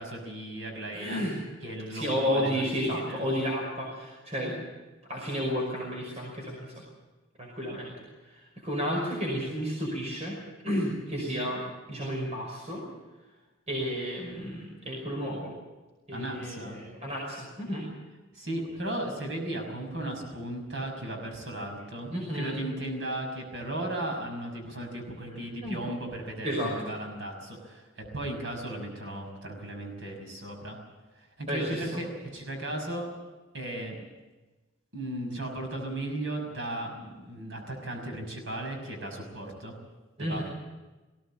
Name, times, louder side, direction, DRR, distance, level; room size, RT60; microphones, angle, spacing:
voice 1, 0.0-1.3 1.6-3.3 16.1-16.8 18.3-30.8 31.2-32.1 32.3-33.1 33.5-34.0 34.9-39.7 40.2-40.4, right 1 dB, 65° right, 3 dB, 5.9 m, -36 dB
voice 2, 0.9-1.4 1.9-4.7 5.0-6.8 7.4-7.9 8.2-10.4 10.6-11.6 11.9-12.8 13.7-15.5 16.1-17.9 22.1-22.6 25.6-25.8 26.4-26.7 31.5-31.8 40.2-40.4, equal, 35° right, -2 dB, 5.5 m, -32 dB
20.5 x 17.0 x 8.7 m, 1.2 s
head